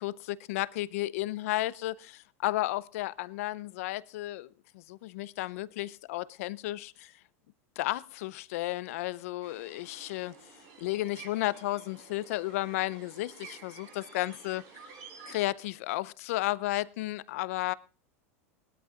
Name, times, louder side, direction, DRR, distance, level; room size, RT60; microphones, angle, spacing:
voice 1, 0.0-4.5 4.7-7.1 7.8-10.3 10.8-14.6 15.3-17.7, left 17 dB, 70° left, 0.6 m, -33 dB
sound 1, 9.4-15.4, right 5 dB, 50° right, 5.3 m, -51 dB
20.5 x 13.0 x 2.5 m
supercardioid pair, 125°, 8 cm